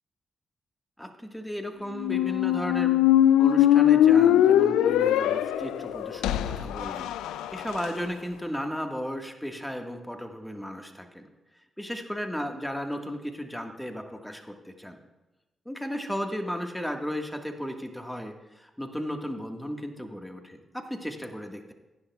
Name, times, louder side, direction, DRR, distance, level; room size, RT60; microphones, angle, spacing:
voice 1, 1.0-3.0 3.4-11.3 11.8-15.0 15.6-21.7, equal, 5° left, 4 dB, 1.6 m, -35 dB
Squeak, 1.9-7.9, left 11 dB, 90° left, 0.3 m, -21 dB
16.0 x 10.5 x 2.4 m, 1.1 s
supercardioid pair, 45°, 0 cm